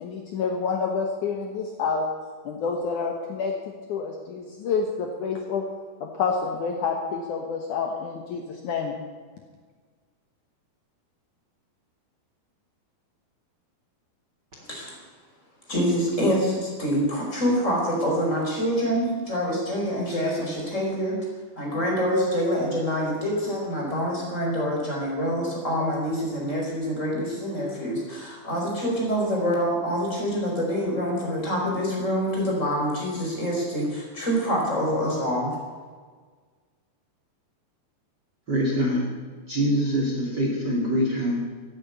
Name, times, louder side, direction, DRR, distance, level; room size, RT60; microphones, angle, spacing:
voice 1, 0.0-2.1 2.5-5.6 6.0-8.9, left 5 dB, 65° left, 2 dB, 2.4 m, -28 dB
voice 2, 15.7-21.2 21.6-35.5, equal, 20° left, -2 dB, 4.6 m, -26 dB
voice 3, 38.5-39.1 39.5-41.4, equal, 30° right, -2 dB, 2.7 m, -24 dB
14.5 x 9.8 x 9.6 m, 1.5 s
omnidirectional pair, 4.3 m